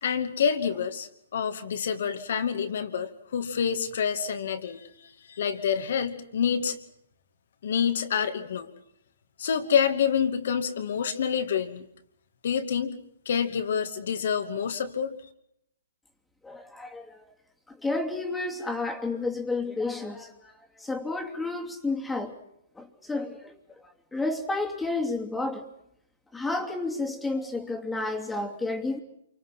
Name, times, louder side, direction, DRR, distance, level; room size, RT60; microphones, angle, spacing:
voice 1, 0.0-6.8 7.6-8.7 9.4-11.9 12.4-13.0 13.3-15.1, left 7 dB, 65° left, 8 dB, 2.5 m, -27 dB
voice 2, 16.4-17.2 17.7-20.5 20.8-22.4 22.8-23.6 24.1-25.7 26.3-29.0, left 3 dB, 5° left, 3 dB, 2.8 m, -31 dB
28.0 x 25.0 x 5.9 m, 0.75 s
hypercardioid pair, 130°, 0 cm